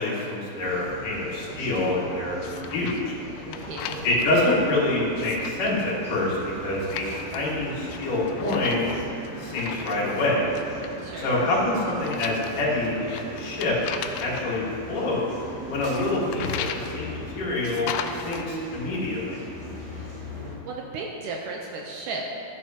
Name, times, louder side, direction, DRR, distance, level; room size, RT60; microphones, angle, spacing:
voice 1, 0.0-2.4 2.7-3.1 4.0-6.4 6.6-8.9 9.4-10.5 11.2-13.7 14.2-14.6 14.9-15.2 15.7-17.9 18.1-19.4, left 2 dB, 65° left, -6 dB, 3.3 m, -26 dB
sound 1, 0.6-20.6, equal, 30° right, 0.5 m, -38 dB
sound 2, 2.4-3.1 3.4-4.4 5.0-5.8 6.8-7.6 7.9-10.3 10.6-11.1 11.9-14.5 15.9-16.9 17.6-18.4, left 8 dB, 80° left, 2.0 m, -36 dB
voice 2, 2.5-2.9 3.6-4.0 11.0-11.4 20.3-20.4 20.6-22.2, right 4 dB, 75° right, -1 dB, 2.0 m, -35 dB
13.0 x 9.5 x 2.8 m, 2.7 s
omnidirectional pair, 4.1 m